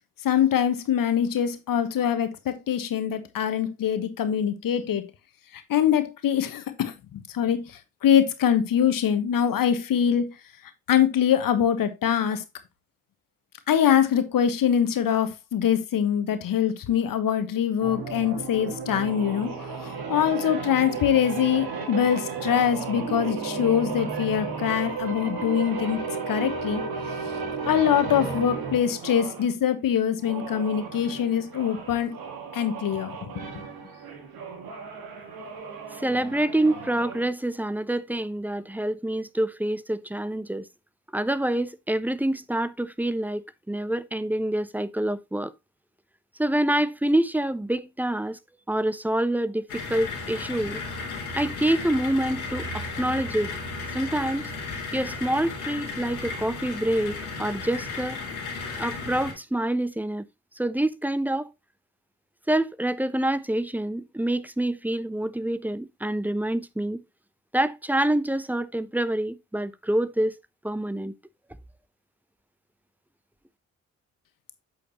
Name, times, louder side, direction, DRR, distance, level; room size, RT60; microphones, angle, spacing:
voice 1, 0.2-5.0 5.5-10.3 10.9-12.4 13.7-26.8 27.6-32.2 32.5-33.3, left 9 dB, 50° left, 1.3 m, -24 dB
sound 1, 17.8-29.5 30.1-37.3, right 5 dB, 60° right, 2.1 m, -34 dB
voice 2, 35.9-40.7 41.1-45.5 46.4-48.4 48.7-50.8 51.3-53.5 53.9-54.5 54.9-58.2 58.8-60.2 60.6-61.5 62.5-67.0 67.5-70.4 70.6-71.1, right 1 dB, 5° right, 0.6 m, -26 dB
sound 2, 49.7-59.3, left 3 dB, 85° left, 1.8 m, -34 dB
8.5 x 6.4 x 2.9 m
figure-of-eight pair, 40°, 41 cm